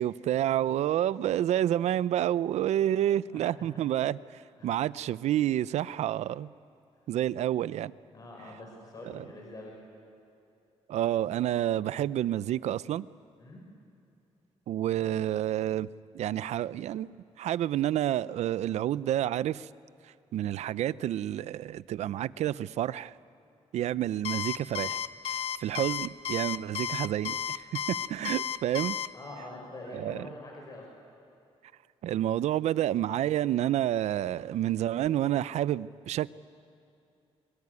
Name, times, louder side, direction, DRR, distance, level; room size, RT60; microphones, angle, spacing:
voice 1, 0.0-6.5 7.1-8.0 9.1-9.2 10.9-13.1 14.7-15.9 16.1-19.7 20.3-23.1 23.7-25.0 25.2-29.0 29.9-30.3 32.0-36.3, right 12 dB, 80° right, 19 dB, 0.5 m, -29 dB
voice 2, 8.1-9.7 13.4-13.6 29.1-30.9, left 2 dB, 35° left, -1 dB, 5.4 m, -45 dB
Alarm, 24.2-29.1, left 9 dB, 60° left, 0.9 m, -33 dB
23.5 x 23.0 x 9.7 m, 2.7 s
cardioid pair, 140°, 11 cm